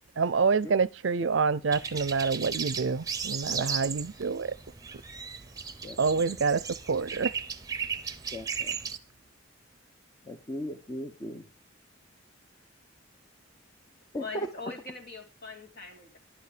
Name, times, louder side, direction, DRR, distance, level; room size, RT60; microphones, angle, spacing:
voice 1, 0.2-4.6 6.0-7.3, right 5 dB, 65° right, 0.5 m, -27 dB
sound 1, 1.7-9.0, right 6 dB, 20° right, 0.9 m, -36 dB
voice 2, 5.8-6.2 8.3-8.7 10.3-11.4 14.1-14.5, equal, 20° left, 0.9 m, -37 dB
voice 3, 14.2-16.2, left 3 dB, 55° left, 3.2 m, -42 dB
11.5 x 9.6 x 5.0 m
head